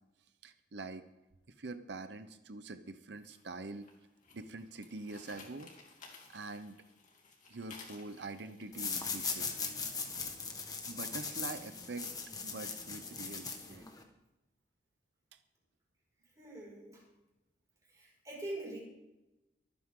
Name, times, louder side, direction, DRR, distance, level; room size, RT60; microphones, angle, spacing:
voice 1, 0.4-1.1 1.5-3.9 4.3-5.7 6.3-6.8 7.5-9.5 10.9-12.1 12.4-13.9 15.3-15.4, right 3 dB, 65° right, 10 dB, 0.8 m, -45 dB
sound 1, 3.2-10.5, left 4 dB, 40° left, 2.9 m, -57 dB
sound 2, 8.7-14.0, left 5 dB, 20° left, 1.5 m, -39 dB
voice 2, 16.4-17.0 17.9-18.8, right 1 dB, 20° right, -3 dB, 5.7 m, -43 dB
24.0 x 9.6 x 3.8 m, 0.97 s
head